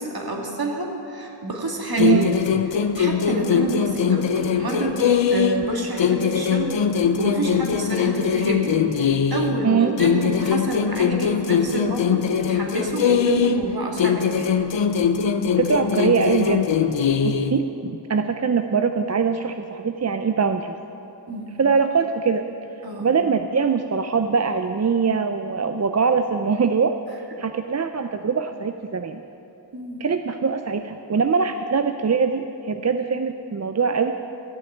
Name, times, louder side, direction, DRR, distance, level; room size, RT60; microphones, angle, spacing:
voice 1, 0.0-2.4 2.7-14.6 21.3-21.6 22.8-23.1 29.7-30.0, right 1 dB, 55° right, 0 dB, 2.1 m, -28 dB
sound 1, 2.0-5.7 6.0-9.6 10.0-13.7 14.0-17.6, left 7 dB, 85° left, 0.7 m, -21 dB
voice 2, 9.6-9.9 15.6-16.6 17.2-20.8 21.6-22.5 23.0-27.0 27.4-29.2 30.0-34.1, right 5 dB, 40° right, 7 dB, 0.5 m, -22 dB
14.0 x 6.5 x 8.5 m, 2.9 s
wide cardioid pair, 45°, 43 cm